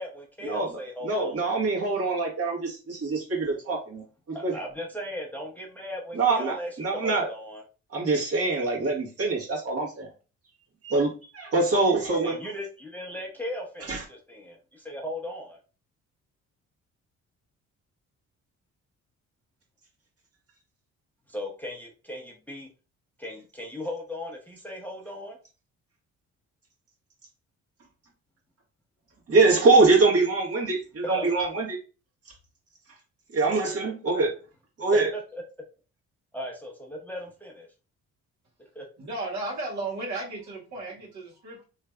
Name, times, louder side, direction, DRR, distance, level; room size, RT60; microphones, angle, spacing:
voice 1, 0.0-1.5 4.3-7.6 12.1-15.6 21.3-22.7 23.2-25.4 31.0-31.3 34.9-35.4 36.3-37.7 38.7-38.8, left 1 dB, 5° left, -2 dB, 0.8 m, -37 dB
voice 2, 1.0-4.5 6.1-7.3 7.9-10.1 10.8-12.4 13.9-14.0 29.3-31.8 33.3-34.3 34.8-35.1, right 3 dB, 50° right, -2 dB, 1.6 m, -24 dB
voice 3, 39.0-41.6, right 2 dB, 65° right, -4 dB, 1.8 m, -34 dB
3.2 x 3.1 x 2.4 m, 0.34 s
cardioid pair, 90°, 30 cm